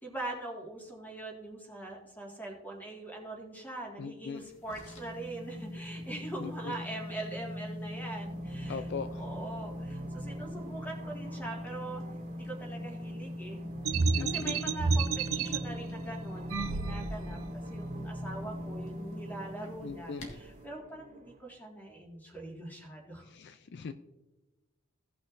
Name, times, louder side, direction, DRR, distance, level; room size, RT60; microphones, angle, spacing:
voice 1, 0.0-8.9 9.2-12.0 12.3-13.6 13.9-17.4 17.7-23.3, right 2 dB, 10° left, 0 dB, 1.9 m, -42 dB
voice 2, 4.0-4.5 6.4-6.8 8.7-9.3 14.1-14.6 19.8-20.4 23.2-23.9, left 5 dB, 55° left, 10 dB, 0.4 m, -40 dB
sound 1, 4.4-20.7, left 1 dB, 85° left, 1.8 m, -41 dB
sound 2, 8.1-21.5, right 2 dB, 35° right, 0.7 m, -47 dB
sound 3, 13.8-15.6 16.5-17.4, right 4 dB, 75° right, 0.6 m, -30 dB
17.0 x 6.1 x 2.6 m, 1.1 s
head